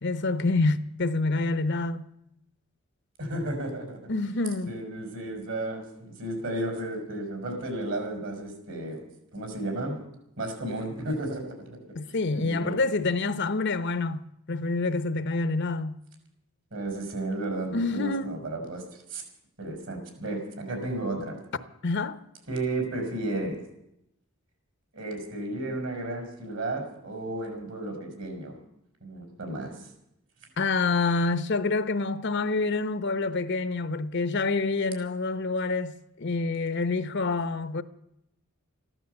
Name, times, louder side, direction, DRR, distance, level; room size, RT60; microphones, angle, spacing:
voice 1, 0.0-2.1 4.1-4.7 11.9-14.2 14.5-16.0 17.7-18.3 21.8-22.2 30.6-37.8, left 3 dB, 55° left, 0.8 m, -27 dB
voice 2, 3.2-4.0 4.7-9.1 9.3-10.0 10.4-11.5 12.3-12.8 16.7-18.8 19.1-19.2 19.6-21.4 22.5-23.6 24.9-28.5 29.0-29.8, right 2 dB, 65° right, 5.0 m, -33 dB
14.5 x 12.0 x 8.0 m
head